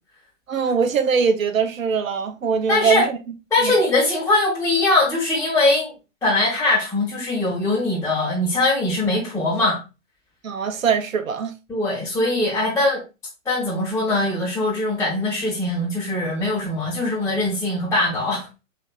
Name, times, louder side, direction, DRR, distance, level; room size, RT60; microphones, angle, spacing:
voice 1, 0.5-3.2 3.6-3.7 10.4-11.5, right 6 dB, 85° right, 0.7 m, -22 dB
voice 2, 2.7-3.0 3.5-5.9 6.2-9.8 11.7-13.0 13.4-18.5, left 2 dB, 10° left, 1.7 m, -21 dB
6.3 x 3.3 x 2.3 m
hypercardioid pair, 120°, 39 cm